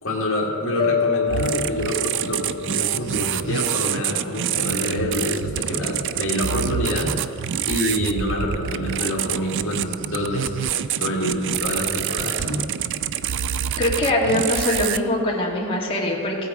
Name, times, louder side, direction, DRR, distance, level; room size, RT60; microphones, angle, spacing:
voice 1, 0.0-10.7 11.0-12.7, left 1 dB, 65° left, -4 dB, 1.8 m, -26 dB
sound 1, 0.8-3.9, left 6 dB, 45° left, 0.4 m, -28 dB
sound 2, 1.3-15.0, right 9 dB, 55° right, 0.4 m, -27 dB
voice 2, 13.8-16.5, left 1 dB, 25° left, -3 dB, 2.0 m, -22 dB
15.5 x 8.4 x 4.8 m, 2.4 s
head